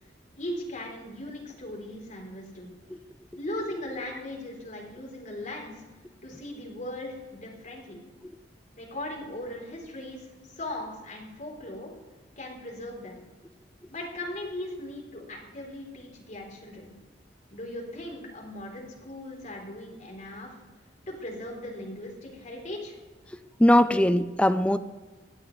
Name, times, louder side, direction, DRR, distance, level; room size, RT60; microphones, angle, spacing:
voice 1, 0.3-2.7 3.4-5.8 6.2-8.0 8.8-11.9 12.4-13.2 13.9-16.9 17.5-20.5 21.1-22.9, left 1 dB, 45° left, -1 dB, 3.6 m, -38 dB
voice 2, 23.6-24.8, left 1 dB, 5° left, 11 dB, 0.5 m, -20 dB
17.5 x 11.0 x 3.3 m, 1.2 s
head